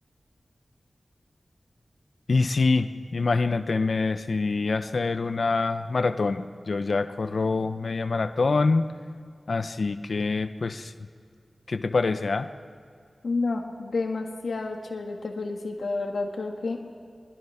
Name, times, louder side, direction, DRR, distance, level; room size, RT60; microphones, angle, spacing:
voice 1, 2.3-8.9 9.5-10.9 11.7-12.5, left 3 dB, 70° left, 10 dB, 0.9 m, -25 dB
voice 2, 13.2-16.8, left 3 dB, 90° left, 2 dB, 1.9 m, -30 dB
22.5 x 21.0 x 5.9 m, 2.3 s
wide cardioid pair, 90°, 0 cm